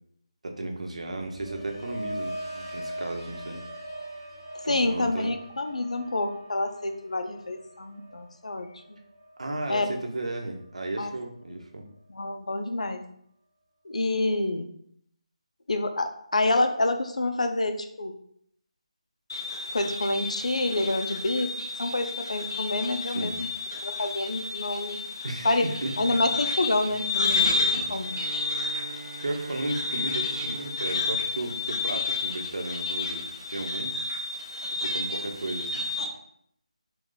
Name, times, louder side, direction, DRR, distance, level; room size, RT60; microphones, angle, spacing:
voice 1, 0.4-3.6 4.6-5.3 9.4-11.9 23.1-23.4 25.2-26.0 27.7-28.0 29.2-33.2 33.5-33.9 34.7-35.9, right 2 dB, 70° right, 2 dB, 0.9 m, -34 dB
sound 1, 1.0-11.0 11.4-11.8, right 1 dB, 5° left, 1.0 m, -42 dB
voice 2, 4.7-8.7 9.7-9.9 11.0-11.1 12.1-13.0 13.8-14.7 15.7-18.1 19.7-23.5 23.8-25.0 25.4-25.7 26.0-28.1, left 2 dB, 85° left, 7 dB, 0.5 m, -28 dB
sound 2, 19.3-36.1, left 3 dB, 45° left, 0.6 m, -31 dB
Bowed string instrument, 28.0-32.4, right 3 dB, 35° right, 0.9 m, -43 dB
3.9 x 2.3 x 3.8 m, 0.68 s
figure-of-eight pair, 170°, 4 cm